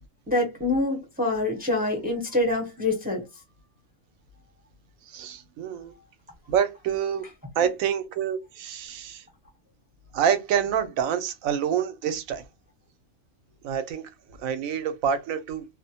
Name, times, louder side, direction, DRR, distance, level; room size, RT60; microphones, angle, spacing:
voice 1, 0.3-3.2, left 2 dB, 10° right, 0.6 m, -25 dB
voice 2, 5.1-5.9 6.5-7.2 7.6-9.2 10.1-12.4 13.6-14.1 14.4-15.7, right 8 dB, 90° right, 1.0 m, -27 dB
2.4 x 2.1 x 2.7 m
omnidirectional pair, 1.4 m